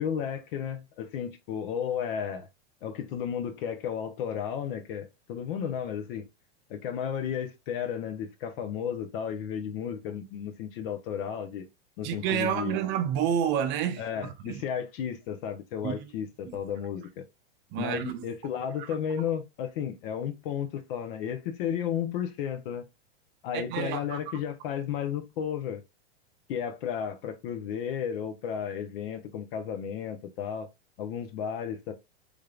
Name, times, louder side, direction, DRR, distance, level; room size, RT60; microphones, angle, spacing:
voice 1, 0.0-2.5 2.8-6.3 6.7-11.7 12.0-12.8 14.0-17.2 17.8-22.8 23.4-25.8 26.5-30.7 31.0-31.9, left 8 dB, 55° left, 0.7 m, -33 dB
voice 2, 12.0-14.6 15.8-16.1 16.5-16.6 17.7-18.2 18.8-18.9 23.5-24.2, right 9 dB, 35° right, 0.6 m, -29 dB
3.5 x 3.4 x 2.3 m
hypercardioid pair, 130°, 33 cm